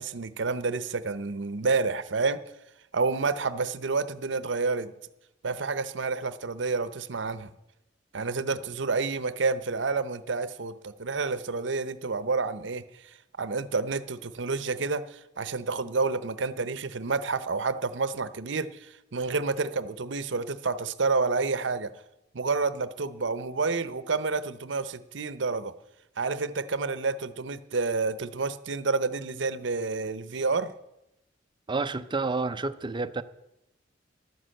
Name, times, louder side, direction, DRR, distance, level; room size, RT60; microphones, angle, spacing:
voice 1, 0.0-2.4 2.9-4.9 5.4-7.5 8.1-12.8 13.4-21.9 22.3-25.7 26.2-30.7, right 4 dB, 75° right, 14 dB, 0.8 m, -29 dB
voice 2, 31.7-33.2, right 3 dB, 25° right, 12 dB, 0.5 m, -29 dB
12.0 x 9.9 x 7.7 m, 0.88 s
head